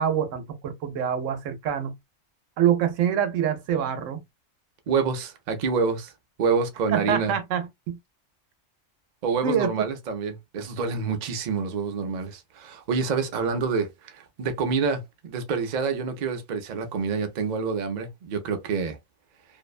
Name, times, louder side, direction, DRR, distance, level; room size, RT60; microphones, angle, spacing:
voice 1, 0.0-1.9 2.6-4.2 6.9-8.0 9.4-9.7, right 8 dB, 90° right, 1.0 m, -25 dB
voice 2, 4.9-6.1 6.4-7.3 9.2-19.0, right 5 dB, 50° right, 0.5 m, -27 dB
2.6 x 2.1 x 2.4 m
omnidirectional pair, 1.3 m